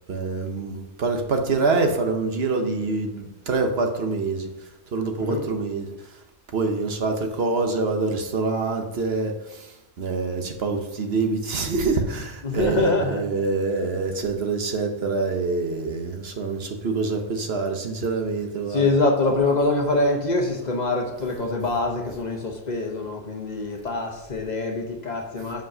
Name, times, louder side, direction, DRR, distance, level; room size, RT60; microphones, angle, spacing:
voice 1, 0.1-6.2 6.5-18.9, right 3 dB, 65° right, 1.1 m, -26 dB
voice 2, 12.4-13.2 18.7-25.6, left 2 dB, 45° left, 1.0 m, -24 dB
5.8 x 5.2 x 5.5 m
omnidirectional pair, 1.1 m